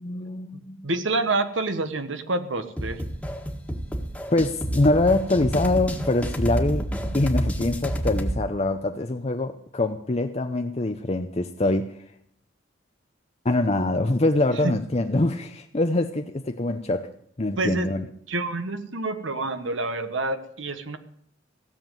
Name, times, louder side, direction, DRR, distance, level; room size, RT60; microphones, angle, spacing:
voice 1, 0.0-0.9 4.3-6.9 7.1-12.0 13.4-17.1 17.4-18.1, left 2 dB, 30° left, 0.6 m, -24 dB
voice 2, 0.5-3.0 14.6-14.7 17.6-17.9 18.3-21.0, right 2 dB, 75° right, 1.3 m, -28 dB
sound 1, 2.8-8.4, equal, 5° left, 1.6 m, -29 dB
16.5 x 7.4 x 9.1 m
head